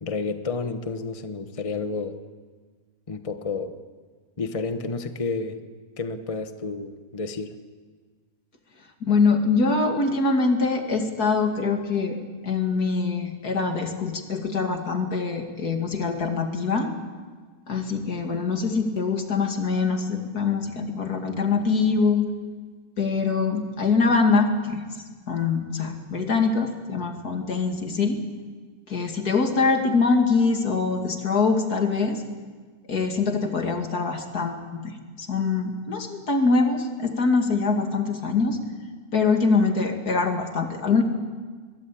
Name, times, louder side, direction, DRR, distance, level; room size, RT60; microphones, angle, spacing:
voice 1, 0.0-2.1 3.1-3.7 4.4-5.6 6.0-7.5, left 4 dB, 25° left, 8 dB, 1.1 m, -30 dB
voice 2, 9.0-12.2 12.4-16.9 17.7-22.2 23.0-24.8 25.3-28.2 28.9-32.2 32.9-34.8 35.2-38.6 39.1-41.0, left 4 dB, 85° left, 4 dB, 2.9 m, -23 dB
22.5 x 22.5 x 8.6 m, 1.5 s
omnidirectional pair, 1.6 m